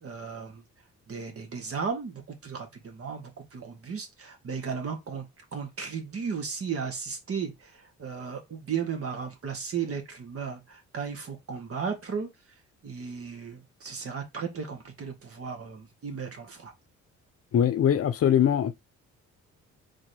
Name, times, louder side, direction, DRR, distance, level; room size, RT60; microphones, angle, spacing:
voice 1, 0.0-0.6 1.1-12.3 12.8-16.7, right 6 dB, 50° right, 1.7 m, -35 dB
voice 2, 17.5-18.7, left 9 dB, 50° left, 0.7 m, -22 dB
4.1 x 3.7 x 3.4 m
cardioid pair, 90°, 30 cm